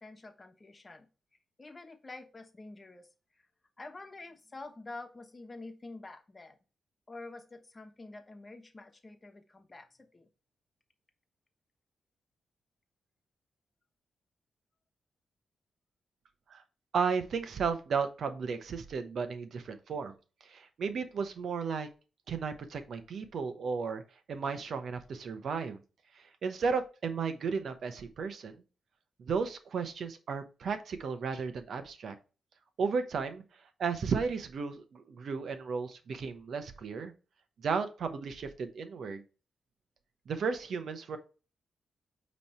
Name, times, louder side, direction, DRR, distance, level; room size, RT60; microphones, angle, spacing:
voice 1, 0.0-1.1 1.6-3.1 3.8-6.6 7.1-10.3, left 2 dB, 30° left, 1.1 m, -47 dB
voice 2, 16.9-20.2 20.4-21.9 22.3-24.0 24.3-25.8 26.1-28.6 29.2-32.1 32.8-37.1 37.6-39.2 40.3-41.2, right 5 dB, 70° right, 0.9 m, -34 dB
8.4 x 3.2 x 4.4 m
cardioid pair, 65°, 0 cm